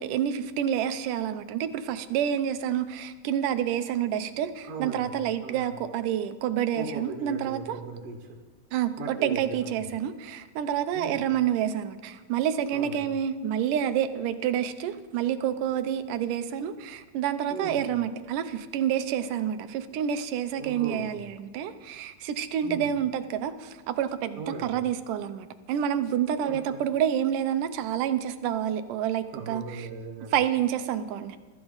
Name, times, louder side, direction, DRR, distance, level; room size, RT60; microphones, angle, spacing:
voice 1, 0.0-7.8 8.7-29.9 30.3-31.4, right 9 dB, 85° right, 11 dB, 2.4 m, -28 dB
voice 2, 4.6-5.1 5.4-5.7 6.7-8.4 9.0-9.9 10.9-11.3 12.7-13.1 17.5-17.8 20.6-21.1 22.6-22.9 24.4-24.8 26.4-26.8 29.3-30.3, right 4 dB, 55° right, 0 dB, 2.4 m, -38 dB
22.5 x 13.5 x 4.0 m, 1.3 s
omnidirectional pair, 3.6 m